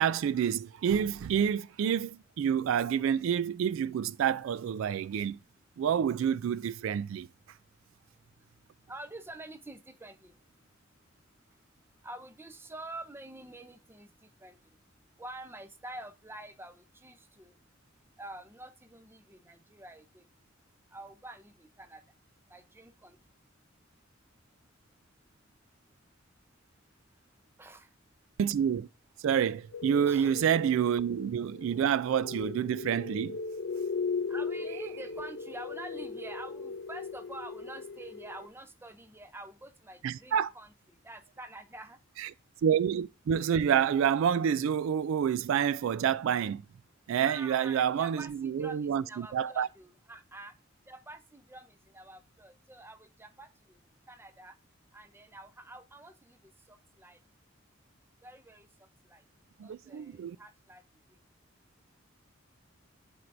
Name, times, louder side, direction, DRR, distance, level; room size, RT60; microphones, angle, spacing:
voice 1, 0.0-5.4 5.8-7.3 28.4-28.9 29.2-33.4 40.0-40.5 42.2-42.3 42.6-46.6 47.1-49.7 59.6-60.4, right 8 dB, 70° right, 0.3 m, -28 dB
voice 2, 8.9-10.3 12.0-14.6 15.2-17.5 18.2-20.2 20.9-22.0 22.5-23.2 27.6-27.9 30.1-30.3 34.3-40.7 41.0-42.0 47.2-50.5 50.9-53.5 54.1-54.5 54.9-56.4 56.7-57.2 58.2-58.7 59.1-59.2 59.6-60.8, right 2 dB, 10° right, 0.6 m, -47 dB
sound 1, 29.7-38.5, left 4 dB, 60° left, 0.5 m, -38 dB
11.0 x 4.5 x 2.6 m
head